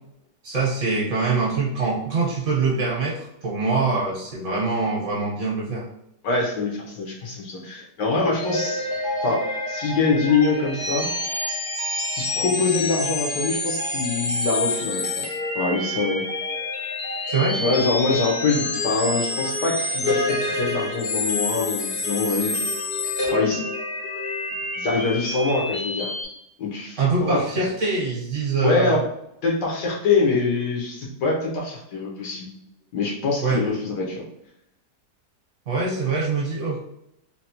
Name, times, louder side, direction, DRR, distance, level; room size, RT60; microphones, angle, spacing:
voice 1, 0.4-5.8 17.3-17.6 27.0-29.0 33.4-33.6 35.7-36.8, right 3 dB, 50° right, -5 dB, 1.2 m, -24 dB
voice 2, 6.2-8.9 9.2-11.1 12.1-16.2 17.6-22.6 23.3-23.6 24.8-26.1 26.6-27.4 28.6-29.1 29.4-32.5 32.9-34.2, left 3 dB, 90° left, -2 dB, 1.4 m, -24 dB
sound 1, 8.4-26.2, left 2 dB, 70° left, 0.4 m, -28 dB
3.9 x 2.1 x 2.8 m, 0.79 s
omnidirectional pair, 1.8 m